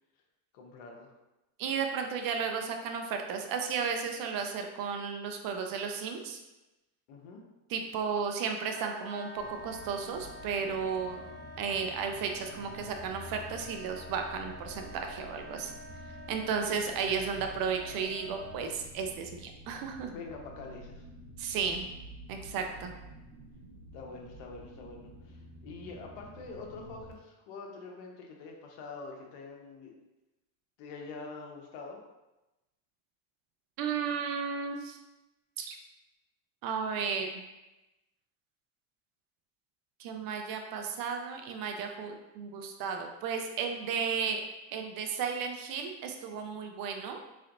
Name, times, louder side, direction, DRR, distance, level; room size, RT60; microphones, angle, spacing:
voice 1, 0.5-1.1 7.1-7.4 20.1-21.1 22.5-22.8 23.9-29.9 30.8-32.0, left 4 dB, 70° left, 1 dB, 0.9 m, -45 dB
voice 2, 1.6-6.4 7.7-11.2 11.6-15.7 16.3-20.1 21.4-21.9 22.3-22.9 33.8-35.0 35.6-35.8 36.6-37.4 40.0-44.4 44.7-47.2, right 6 dB, 50° right, 4 dB, 0.6 m, -34 dB
Wind instrument woodwind instrument, 8.6-18.8, left 1 dB, 30° left, 0.4 m, -47 dB
sound 1, 9.4-27.1, right 1 dB, 90° right, 0.8 m, -49 dB
3.8 x 3.2 x 2.5 m, 1.0 s
supercardioid pair, 115°, 45 cm